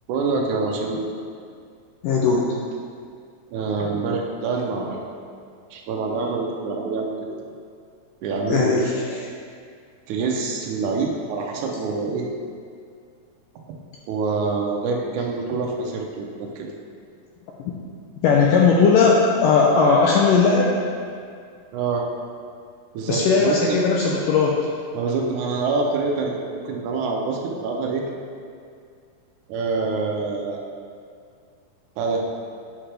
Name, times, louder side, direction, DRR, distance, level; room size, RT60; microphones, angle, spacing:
voice 1, 0.1-1.0 3.5-5.1 5.7-7.4 8.2-8.8 9.1-9.2 10.1-12.3 14.1-16.7 21.7-22.1 22.9-23.8 24.9-28.0 29.5-30.6 32.0-32.2, right 4 dB, 80° right, 0 dB, 1.7 m, -26 dB
voice 2, 2.0-2.5 8.5-9.2 17.6-17.7 18.2-20.7 23.1-24.6, left 5 dB, 80° left, -2 dB, 1.9 m, -18 dB
9.7 x 5.8 x 3.3 m, 2.2 s
omnidirectional pair, 4.4 m